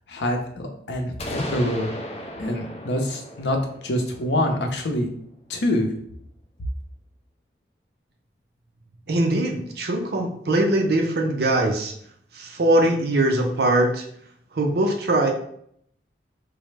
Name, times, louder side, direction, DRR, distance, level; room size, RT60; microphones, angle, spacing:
voice 1, 0.1-1.9 2.4-3.6 3.8-5.1 5.5-5.9, left 1 dB, 80° left, 3 dB, 0.6 m, -25 dB
sound 1, 1.2-5.0, equal, 35° left, 0.5 m, -36 dB
voice 2, 9.1-11.9 12.3-14.0 14.5-15.3, right 1 dB, 60° right, 3 dB, 0.5 m, -21 dB
4.6 x 2.1 x 3.2 m, 0.68 s
head